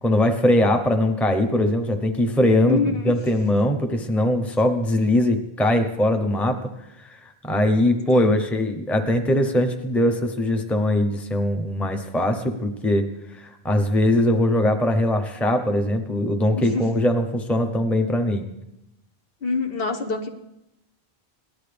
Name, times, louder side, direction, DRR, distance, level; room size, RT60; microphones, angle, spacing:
voice 1, 0.0-6.7 7.0-18.4, left 1 dB, ahead, 5 dB, 0.7 m, -21 dB
voice 2, 2.6-3.1 8.1-8.3 16.5-16.9 19.4-20.3, left 4 dB, 65° left, 4 dB, 1.3 m, -25 dB
18.5 x 11.5 x 3.4 m, 0.85 s
omnidirectional pair, 1.1 m